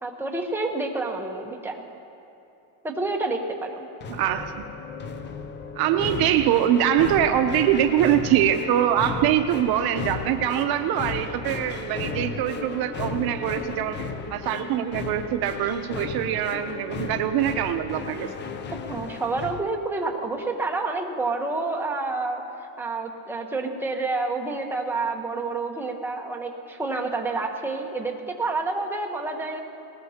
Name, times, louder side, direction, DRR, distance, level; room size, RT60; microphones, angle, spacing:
voice 1, 0.0-1.8 2.8-3.9 18.7-29.6, right 3 dB, 5° right, 1 dB, 1.0 m, -29 dB
sound 1, 4.0-19.6, left 5 dB, 25° left, 0.5 m, -34 dB
voice 2, 4.1-4.6 5.8-14.0 14.3-18.3, right 11 dB, 55° right, 8 dB, 0.7 m, -23 dB
19.5 x 19.0 x 2.9 m, 2.9 s
cardioid pair, 160°, 45 cm